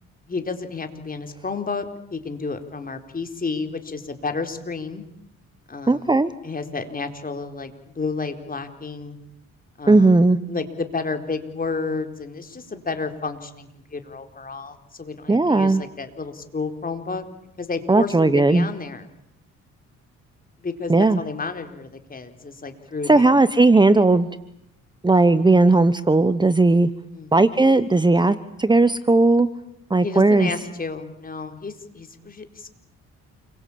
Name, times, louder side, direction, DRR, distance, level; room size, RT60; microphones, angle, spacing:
voice 1, 0.3-5.0 5.7-6.1 6.4-9.2 9.8-10.1 10.5-17.2 17.6-19.1 20.6-23.3 27.1-27.3 30.0-32.7, left 4 dB, 30° left, 7 dB, 4.3 m, -31 dB
voice 2, 5.9-6.3 9.9-10.4 15.3-15.8 17.9-18.7 20.9-21.2 23.1-24.3 25.0-26.9 27.3-29.5 29.9-30.5, right 2 dB, 15° right, 13 dB, 1.2 m, -16 dB
29.0 x 23.0 x 8.8 m, 0.77 s
cardioid pair, 90°, 30 cm